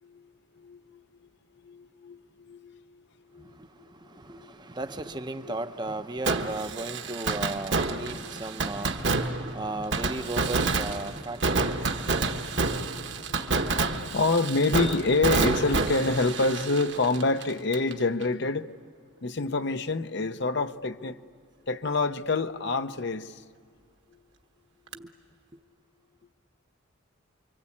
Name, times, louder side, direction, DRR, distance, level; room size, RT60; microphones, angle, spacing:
voice 1, 0.6-1.0 1.6-2.8 3.3-3.5 4.3-4.5 12.4-12.8 13.3-18.7 19.2-21.2 21.7-23.4, left 3 dB, 55° left, 0.8 m, -27 dB
voice 2, 4.2-12.4 24.9-25.1, right 2 dB, 20° right, 0.7 m, -36 dB
Fireworks, 6.3-17.9 18.2-18.3 24.9-25.0, right 3 dB, 55° right, 1.3 m, -28 dB
28.0 x 24.5 x 8.6 m
head